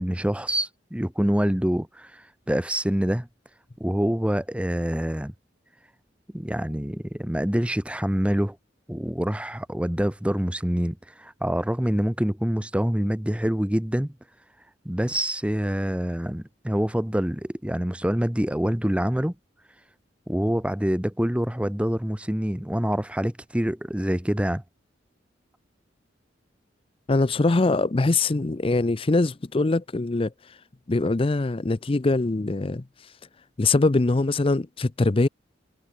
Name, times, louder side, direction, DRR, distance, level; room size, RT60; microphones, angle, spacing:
voice 1, 0.0-3.3 3.8-5.3 6.3-8.6 8.9-14.1 14.8-19.3 20.3-24.6, equal, 5° right, 0.9 m, -26 dB
voice 2, 27.1-30.3 30.9-32.8 33.6-35.3, left 2 dB, 30° left, 0.5 m, -22 dB
head